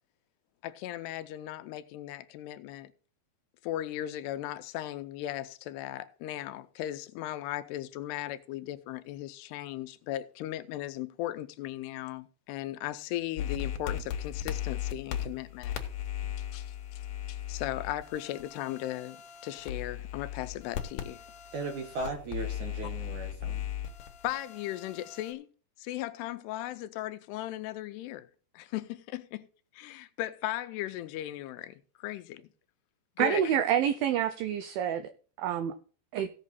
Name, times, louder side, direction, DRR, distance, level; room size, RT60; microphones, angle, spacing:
voice 1, 0.6-2.9 3.6-15.7 16.5-16.7 17.3-19.2 19.4-21.2 24.2-25.5 25.8-28.3 28.5-29.4 29.7-32.5 33.2-33.5, left 14 dB, 80° left, 2.6 m, -37 dB
sound 1, 13.4-25.3, left 10 dB, 65° left, 2.2 m, -37 dB
voice 2, 21.5-23.7, right 3 dB, 65° right, 2.1 m, -37 dB
voice 3, 33.2-35.1 35.4-35.7 36.1-36.3, right 9 dB, 90° right, 2.0 m, -27 dB
17.0 x 6.2 x 4.1 m
omnidirectional pair, 4.9 m